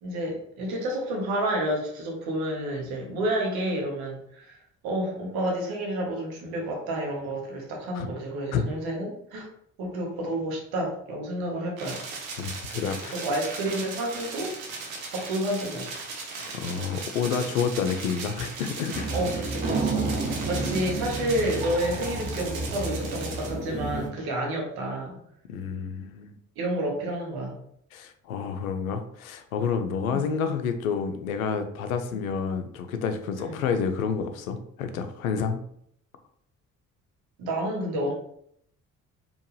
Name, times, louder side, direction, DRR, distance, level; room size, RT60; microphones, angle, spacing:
voice 1, 0.0-4.6 4.8-9.5 9.8-12.0 13.1-14.5 15.1-15.9 19.1-25.2 26.6-27.6 30.1-30.2 32.1-32.2 33.4-33.6 37.4-38.1, right 1 dB, 60° right, 0 dB, 1.3 m, -30 dB
sound 1, 11.8-23.5, right 4 dB, 80° right, 0.8 m, -38 dB
voice 2, 12.4-13.2 16.5-19.1 25.5-26.3 27.9-35.6, left 6 dB, 80° left, 8 dB, 0.5 m, -29 dB
sound 2, 18.9-24.1, right 3 dB, 20° right, 0.7 m, -31 dB
4.4 x 2.9 x 3.1 m, 0.69 s
figure-of-eight pair, 45°, 41 cm